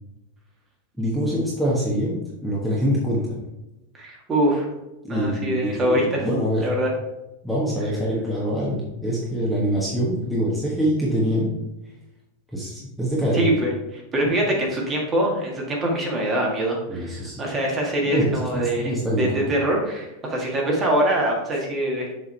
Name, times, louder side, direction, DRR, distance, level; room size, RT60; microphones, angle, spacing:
voice 1, 1.0-2.1 2.4-3.4 5.0-6.7 7.4-11.5 12.5-13.5 14.5-14.6 16.9-17.4 18.0-19.6, equal, ahead, -7 dB, 1.3 m, -24 dB
voice 2, 3.9-4.7 5.1-6.3 6.6-6.9 13.3-22.1, right 1 dB, 20° right, -1 dB, 1.7 m, -24 dB
6.8 x 3.6 x 4.5 m, 0.95 s
supercardioid pair, 150°, 0 cm